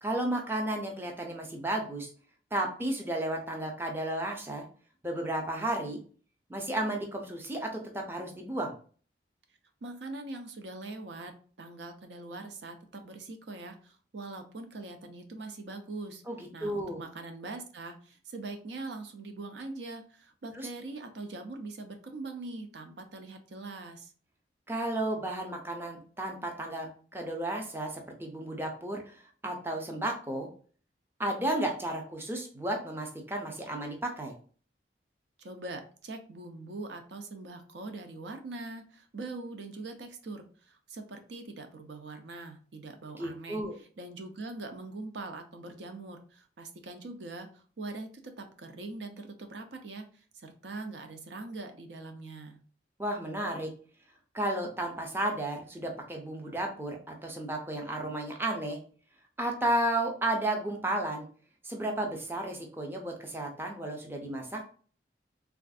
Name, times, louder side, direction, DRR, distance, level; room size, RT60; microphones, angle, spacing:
voice 1, 0.0-2.1 2.5-4.6 5.0-6.0 6.5-8.7 16.3-17.0 20.5-20.7 24.7-30.5 31.2-34.3 43.1-43.7 53.0-53.7 54.3-58.8 59.4-61.3 61.6-64.6, right 1 dB, 15° right, 2 dB, 0.5 m, -33 dB
voice 2, 9.8-16.2 16.5-24.1 35.4-52.6, right 2 dB, 80° right, 6 dB, 0.5 m, -42 dB
3.3 x 2.4 x 2.3 m, 0.42 s
head